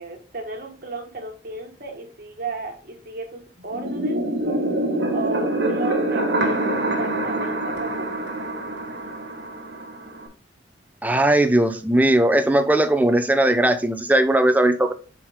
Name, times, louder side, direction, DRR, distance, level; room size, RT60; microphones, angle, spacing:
voice 1, 0.0-4.2 5.1-8.3, right 3 dB, 55° right, 1 dB, 1.5 m, -34 dB
sound 1, 3.7-10.3, right 1 dB, 80° right, 1.4 m, -25 dB
voice 2, 11.0-14.9, right 1 dB, 10° right, 8 dB, 0.6 m, -18 dB
5.7 x 4.8 x 3.5 m, 0.35 s
head